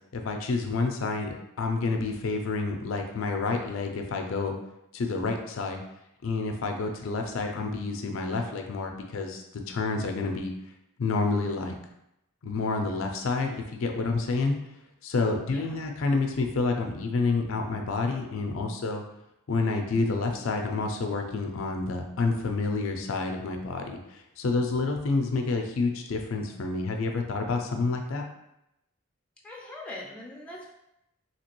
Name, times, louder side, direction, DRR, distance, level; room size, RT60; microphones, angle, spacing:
voice 1, 0.1-4.5 4.9-5.8 6.2-10.5 11.0-11.8 12.4-14.5 15.0-19.0 19.5-28.2, left 3 dB, 65° left, 3 dB, 0.4 m, -29 dB
voice 2, 15.5-15.8 29.4-30.7, left 1 dB, 5° left, -4 dB, 0.4 m, -41 dB
2.9 x 2.9 x 2.9 m, 0.84 s
head